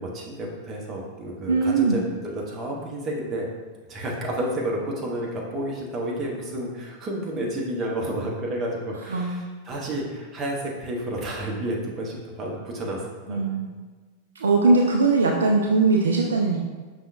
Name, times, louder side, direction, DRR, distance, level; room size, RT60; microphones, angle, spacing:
voice 1, 0.0-3.5 3.9-13.6, right 1 dB, 25° right, -2 dB, 1.0 m, -31 dB
voice 2, 1.5-2.0 9.1-9.4 13.3-13.7 14.4-16.6, right 3 dB, 70° right, 0 dB, 0.4 m, -20 dB
5.4 x 3.1 x 2.6 m, 1.4 s
figure-of-eight pair, 90°, 0 cm